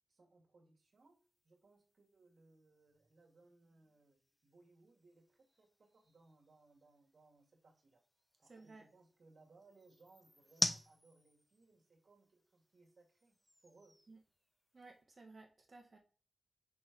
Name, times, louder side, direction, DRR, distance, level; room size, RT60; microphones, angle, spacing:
voice 1, 0.1-8.0 8.4-13.4 13.6-14.0, right 3 dB, 55° right, -2 dB, 2.3 m, -67 dB
sound 1, 0.8-15.0, left 1 dB, 5° left, 0.4 m, -48 dB
voice 2, 8.4-8.8 14.1-14.2 14.7-16.0, right 3 dB, 35° right, 2 dB, 1.0 m, -57 dB
6.1 x 3.2 x 5.3 m, 0.39 s
wide cardioid pair, 175°, 0 cm